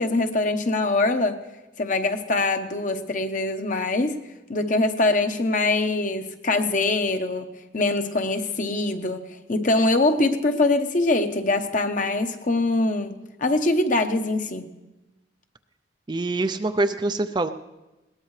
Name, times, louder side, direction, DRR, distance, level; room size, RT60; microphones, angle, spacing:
voice 1, 0.0-1.4 1.8-4.2 4.5-14.7, left 2 dB, 45° left, 7 dB, 1.0 m, -23 dB
voice 2, 16.1-17.5, right 2 dB, 25° right, 9 dB, 0.4 m, -24 dB
20.5 x 18.0 x 3.3 m, 1.1 s
head